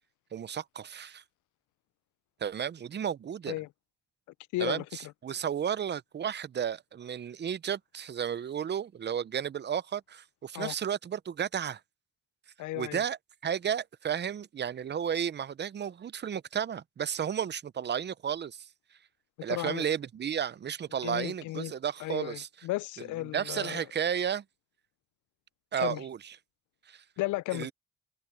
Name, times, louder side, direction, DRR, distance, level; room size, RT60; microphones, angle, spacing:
voice 1, 0.3-1.2 2.4-3.6 4.6-11.8 12.8-13.2 13.4-18.7 19.4-22.5 23.3-24.4 25.7-26.2 26.9-27.0 27.5-27.7, right 8 dB, 35° right, 0.6 m, -33 dB
voice 2, 4.5-5.1 10.5-10.7 12.6-13.0 19.5-19.8 21.0-21.7 22.0-23.8 25.8-26.0 27.2-27.7, left 18 dB, 80° left, 0.5 m, -34 dB
cardioid pair, 90°, 30 cm